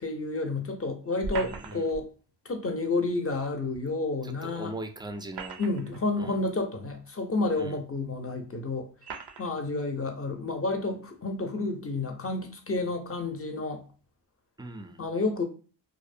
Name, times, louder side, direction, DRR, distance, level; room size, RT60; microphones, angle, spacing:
voice 1, 0.0-2.1 2.4-4.7 5.6-8.9 9.4-13.8 15.0-15.4, left 3 dB, 35° left, 0.6 m, -30 dB
sound 1, 1.2-2.0 3.7-3.8 5.1-6.0 6.9-7.0 7.9-8.0 9.0-9.5, right 4 dB, 70° right, 0.5 m, -39 dB
voice 2, 1.4-1.9 4.2-5.6 6.2-6.4 7.6-7.8 14.6-15.0, right 2 dB, 10° right, 0.4 m, -40 dB
2.7 x 2.0 x 2.5 m
cardioid pair, 50°, 41 cm